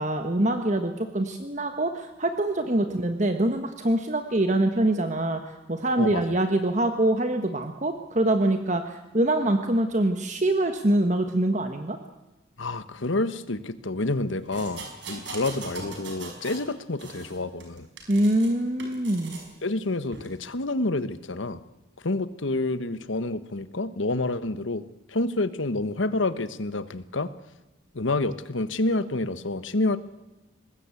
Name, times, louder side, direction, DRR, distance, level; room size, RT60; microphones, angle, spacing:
voice 1, 0.0-5.4 5.7-12.0 18.1-19.4, right 1 dB, 40° right, 7 dB, 1.3 m, -24 dB
voice 2, 12.6-17.9 19.6-21.6 22.0-27.3 27.9-30.0, left 2 dB, 80° left, 13 dB, 1.2 m, -28 dB
sound 1, 14.5-16.7 17.0-18.5 18.8-19.5 20.1-20.3, right 3 dB, 70° right, 5.2 m, -40 dB
23.5 x 20.0 x 8.4 m, 1.1 s
head